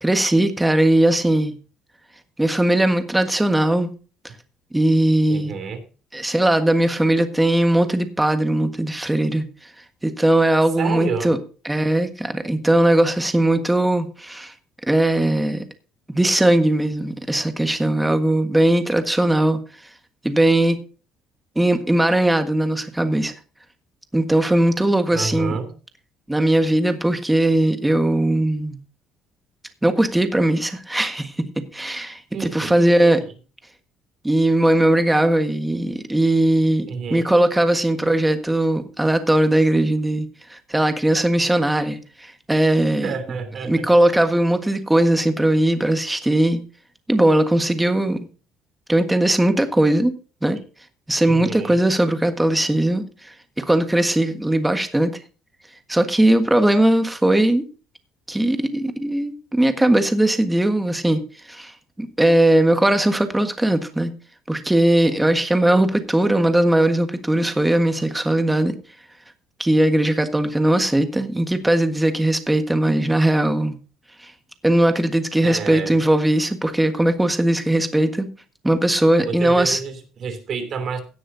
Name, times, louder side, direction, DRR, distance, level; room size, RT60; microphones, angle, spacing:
voice 1, 0.0-1.5 2.4-3.9 4.7-5.5 6.1-9.4 10.0-11.4 11.6-14.5 14.9-15.6 16.1-19.6 20.2-20.8 21.5-23.3 24.1-25.5 26.3-28.8 29.8-33.2 34.2-43.1 43.7-46.6 47.1-48.2 48.9-50.1 50.4-50.6 51.1-53.0 53.6-55.1 55.9-57.6 58.3-61.2 61.5-61.7 62.0-64.1 64.5-68.7 69.6-73.7 74.6-78.3 78.6-79.8, right 1 dB, 5° right, 1.5 m, -19 dB
voice 2, 5.3-5.8 10.8-11.3 25.1-25.7 32.3-33.2 36.9-37.3 43.0-43.9 51.3-51.8 65.7-65.9 75.4-76.0 79.2-81.0, right 5 dB, 45° right, 3.0 m, -29 dB
17.0 x 10.0 x 2.7 m
cardioid pair, 140°, 0 cm